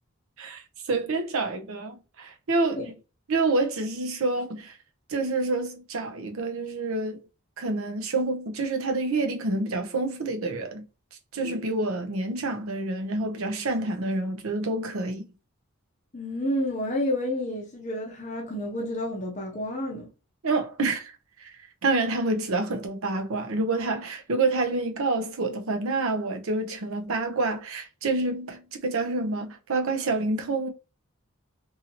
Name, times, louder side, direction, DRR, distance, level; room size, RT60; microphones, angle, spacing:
voice 1, 0.4-2.9 3.3-4.8 5.1-7.2 7.6-10.8 11.3-15.2 20.4-30.7, right 3 dB, 75° right, 0.6 m, -28 dB
voice 2, 16.1-20.1, left 1 dB, 35° left, 0.6 m, -30 dB
2.7 x 2.7 x 2.8 m
head